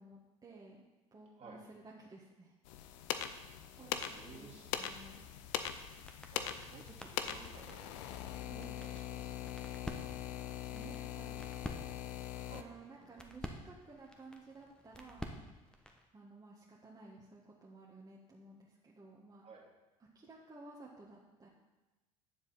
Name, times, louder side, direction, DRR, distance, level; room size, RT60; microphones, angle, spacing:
voice 1, 0.0-2.5 3.8-4.5 4.8-5.3 8.4-8.9 10.7-11.5 12.5-15.3 16.1-19.5 20.1-21.5, right 3 dB, 25° right, -4 dB, 1.7 m, -55 dB
sound 1, 2.7-12.6, left 10 dB, 70° left, 0.6 m, -42 dB
voice 2, 3.8-4.7 6.3-8.1 8.5-9.5 12.5-13.3 19.4-19.7, right 4 dB, 40° right, -2 dB, 2.5 m, -55 dB
sound 2, 5.2-16.1, equal, 5° left, 1.3 m, -51 dB
9.7 x 7.2 x 4.3 m, 1.1 s
hypercardioid pair, 60°, 17 cm